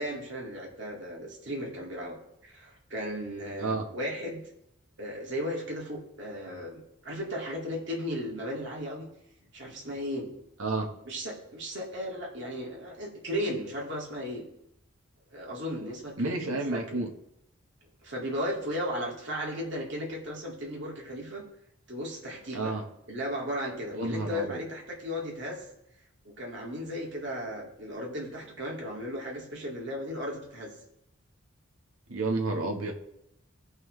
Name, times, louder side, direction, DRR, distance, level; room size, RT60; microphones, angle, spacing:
voice 1, 0.0-2.2 2.4-4.4 5.0-9.1 9.5-10.3 11.1-14.4 15.3-17.0 18.0-21.4 21.9-22.7 23.1-25.6 26.2-30.7, equal, 55° right, -2 dB, 2.3 m, -35 dB
voice 2, 16.2-17.1 22.5-22.8 23.9-24.6 32.1-32.9, right 2 dB, 80° right, 2 dB, 1.3 m, -30 dB
16.5 x 5.6 x 3.2 m, 0.81 s
head